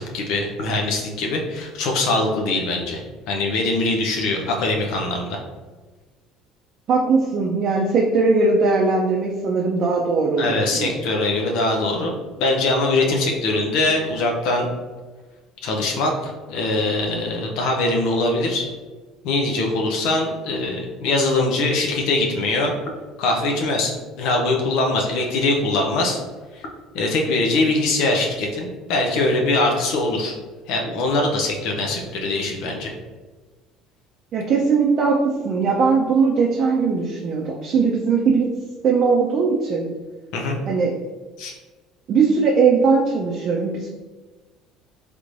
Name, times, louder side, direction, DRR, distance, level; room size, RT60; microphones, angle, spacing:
voice 1, 0.0-5.4 10.4-14.7 15.6-18.7 19.2-22.7 23.2-26.2 26.5-26.6 26.9-30.3 30.7-32.9 40.3-40.6 41.4-41.5, left 2 dB, 70° left, 1 dB, 0.6 m, -22 dB
voice 2, 6.9-11.0 34.3-38.5 38.8-39.9 40.7-40.9 42.1-43.9, right 4 dB, 50° right, -1 dB, 0.5 m, -19 dB
3.4 x 3.0 x 2.6 m, 1.3 s
hypercardioid pair, 75°, 0 cm